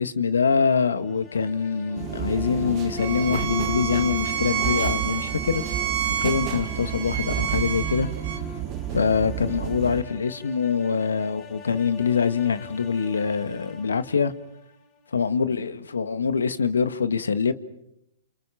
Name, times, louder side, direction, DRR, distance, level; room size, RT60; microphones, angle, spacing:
voice 1, 0.0-5.6 6.2-8.1 8.9-14.3 15.1-17.5, left 6 dB, 85° left, 1.7 m, -24 dB
sound 1, 0.9-15.1, left 6 dB, 35° left, 5.0 m, -41 dB
sound 2, 1.9-10.0, right 10 dB, 30° right, 1.6 m, -31 dB
Bowed string instrument, 3.0-8.4, right 9 dB, 50° right, 3.8 m, -29 dB
30.0 x 28.0 x 5.9 m
hypercardioid pair, 130°, 0 cm